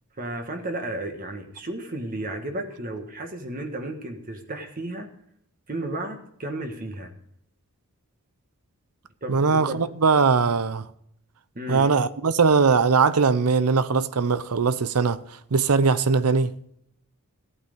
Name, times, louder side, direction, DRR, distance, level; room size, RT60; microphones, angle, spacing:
voice 1, 0.2-5.1 5.7-7.1 9.2-9.8 11.5-11.9, right 1 dB, 40° right, 1.5 m, -33 dB
voice 2, 9.3-10.9 11.7-15.2 15.5-16.5, right 5 dB, 85° right, 0.7 m, -20 dB
15.5 x 8.7 x 5.2 m
head